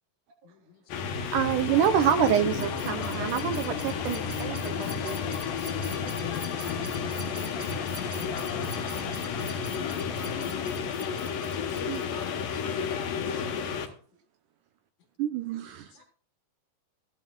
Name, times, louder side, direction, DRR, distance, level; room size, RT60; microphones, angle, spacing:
voice 1, 0.4-1.3 4.8-5.7 11.7-12.0 12.5-12.6 13.3-13.4 15.9-16.0, left 7 dB, 65° left, 6 dB, 2.5 m, -58 dB
sound 1, 0.9-13.9, left 6 dB, 80° left, 2.9 m, -31 dB
sound 2, 1.2-12.3, right 1 dB, 15° right, 2.2 m, -45 dB
voice 2, 1.3-5.2 8.9-9.0 11.9-12.1 15.2-15.9, right 9 dB, 75° right, 8 dB, 2.3 m, -27 dB
voice 3, 5.0-6.9 7.4-8.2 9.5-9.6 10.3-10.5 11.0-11.7 12.2-14.0 16.0-16.1, right 2 dB, 60° right, 1 dB, 5.0 m, -57 dB
15.5 x 11.5 x 2.3 m, 0.40 s
omnidirectional pair, 3.9 m